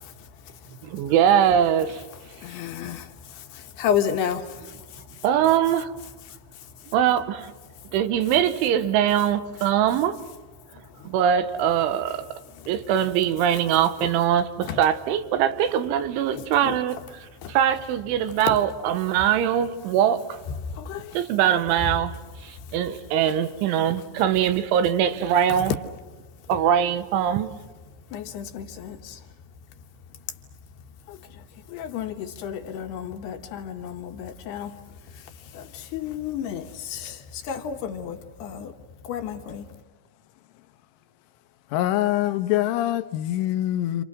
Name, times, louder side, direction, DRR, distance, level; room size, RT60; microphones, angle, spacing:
voice 1, 0.0-0.8 2.3-5.2 6.3-6.7 10.9-11.1 12.6-12.7 14.0-14.1 14.7-14.8 16.3-16.8 17.4-17.6 20.6-21.2 22.7-22.8 25.5-25.7 28.1-29.2 31.1-34.8 35.1-38.7 39.0-39.7, left 8 dB, 70° left, 2.9 m, -32 dB
voice 2, 0.8-2.0 5.2-6.0 6.9-7.5 7.9-10.2 11.1-12.3 12.7-17.0 17.5-20.4 21.1-22.1 22.4-25.7 26.5-27.5, right 9 dB, 85° right, 3.5 m, -22 dB
voice 3, 41.7-44.0, left 13 dB, 85° left, 3.5 m, -24 dB
29.0 x 28.5 x 6.1 m
omnidirectional pair, 5.5 m